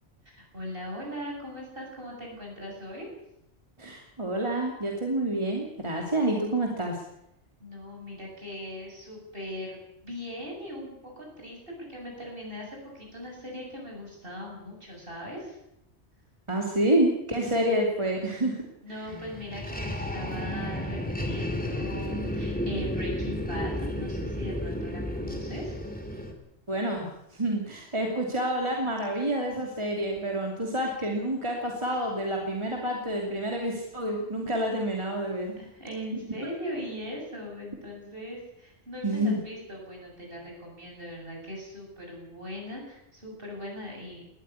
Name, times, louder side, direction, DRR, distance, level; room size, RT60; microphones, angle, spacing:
voice 1, 0.2-3.1 7.6-15.6 18.8-25.8 35.6-44.2, equal, 50° right, 0 dB, 8.0 m, -40 dB
voice 2, 3.8-7.0 16.5-18.6 26.7-35.5 39.0-39.4, right 1 dB, 25° right, 0 dB, 2.9 m, -28 dB
sound 1, 19.1-26.3, left 1 dB, 5° left, 2.9 m, -32 dB
20.0 x 14.0 x 9.8 m, 0.82 s
omnidirectional pair, 1.2 m